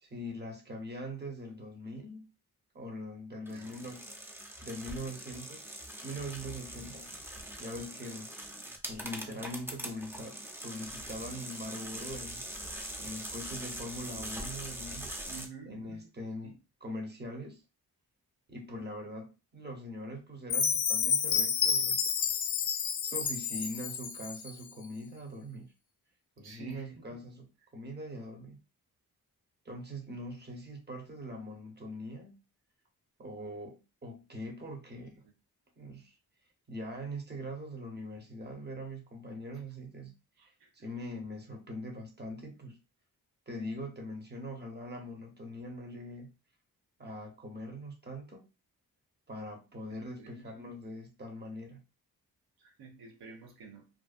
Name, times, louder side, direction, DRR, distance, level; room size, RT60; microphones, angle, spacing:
voice 1, 0.0-2.3 2.7-4.1 4.6-5.7 6.0-8.3 8.9-12.4 13.0-15.1 15.7-17.6 18.5-22.0 22.3-22.4 23.0-25.7 26.4-28.6 29.6-32.4 33.2-35.2 35.8-36.1 36.7-42.8 43.5-46.3 47.0-48.5 49.3-51.8, equal, 25° right, 0.9 m, -42 dB
sound 1, 3.5-15.5, right 1 dB, 5° right, 0.5 m, -42 dB
voice 2, 3.5-4.0 15.3-16.1 16.4-16.6 26.4-27.2 40.4-40.7 49.9-50.5 52.6-53.9, right 5 dB, 90° right, 0.7 m, -50 dB
Chime, 20.5-24.6, left 7 dB, 55° left, 0.5 m, -30 dB
2.6 x 2.2 x 2.4 m
cardioid pair, 60°, 37 cm